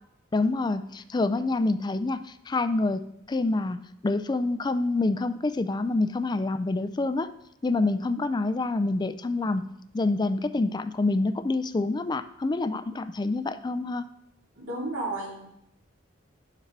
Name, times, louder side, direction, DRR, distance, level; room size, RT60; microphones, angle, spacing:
voice 1, 0.3-7.3 7.6-14.1, left 2 dB, 20° left, 11 dB, 0.4 m, -27 dB
voice 2, 14.5-15.5, right 2 dB, 75° right, -4 dB, 3.0 m, -32 dB
9.3 x 7.3 x 3.3 m, 0.78 s
head